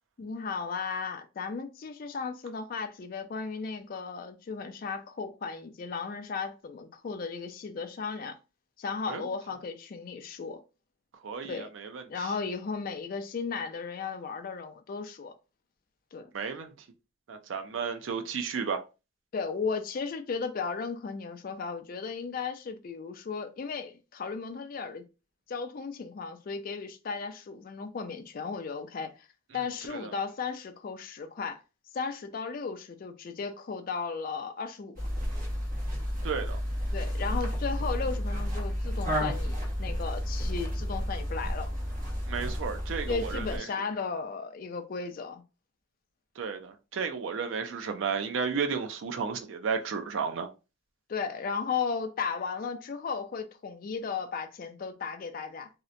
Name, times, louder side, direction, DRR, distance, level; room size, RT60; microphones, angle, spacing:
voice 1, 0.2-8.3 8.8-10.6 11.4-11.7 12.1-15.3 16.1-16.3 19.3-25.0 25.5-29.3 29.5-31.6 31.9-34.9 36.9-41.7 43.1-45.4 51.1-55.7, left 5 dB, 45° left, 0.3 m, -35 dB
voice 2, 11.2-12.3 16.3-16.7 17.3-18.8 29.9-30.1 36.2-36.6 42.3-43.7 46.4-50.5, right 6 dB, 70° right, 0.4 m, -33 dB
sound 1, 35.0-43.6, equal, 40° right, 1.0 m, -31 dB
2.8 x 2.1 x 2.5 m
head